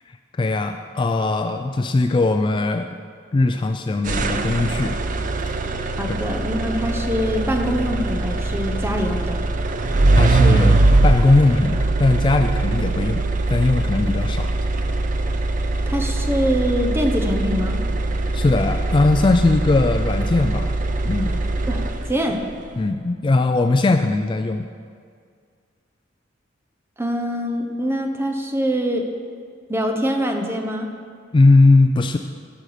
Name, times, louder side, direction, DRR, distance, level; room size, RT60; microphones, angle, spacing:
voice 1, 0.3-3.0 3.3-5.0 10.1-14.5 18.3-20.7 21.0-21.4 22.8-24.7 31.3-32.2, left 2 dB, 25° left, 6 dB, 0.3 m, -19 dB
sound 1, 4.1-22.3, right 2 dB, 45° right, 0.6 m, -21 dB
voice 2, 6.0-9.4 15.9-17.8 21.7-21.8 22.1-22.4 27.0-29.1 29.7-30.9, equal, 15° right, 3 dB, 0.8 m, -24 dB
12.5 x 6.4 x 5.0 m, 2.1 s
head